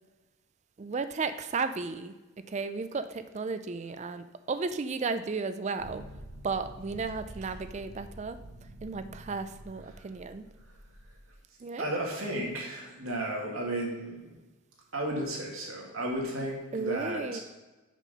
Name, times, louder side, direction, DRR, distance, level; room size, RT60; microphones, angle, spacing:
voice 1, 0.8-6.1 6.4-8.4 8.8-10.5 11.6-11.9 16.7-17.4, right 4 dB, 30° right, 11 dB, 0.3 m, -34 dB
sound 1, 5.8-11.3, right 1 dB, 90° right, 2.0 m, -48 dB
voice 2, 11.8-14.3 14.9-17.4, right 1 dB, 70° right, -2 dB, 2.0 m, -34 dB
6.2 x 5.8 x 5.2 m, 1.1 s
head